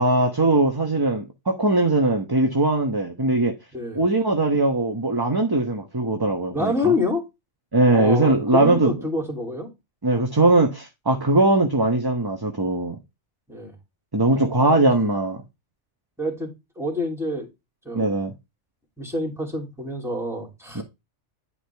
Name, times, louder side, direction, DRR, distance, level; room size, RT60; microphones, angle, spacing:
voice 1, 0.0-3.5 3.9-6.9 7.7-8.9 10.0-12.9 14.1-15.4 17.9-18.3 20.7-20.8, right 2 dB, 20° right, 1.0 m, -20 dB
voice 2, 6.5-7.2 7.9-9.7 13.5-13.7 14.6-14.9 16.2-16.5 16.8-17.5 17.8-18.1 19.0-20.8, left 2 dB, ahead, 3.1 m, -27 dB
11.0 x 5.0 x 3.5 m
omnidirectional pair, 1.2 m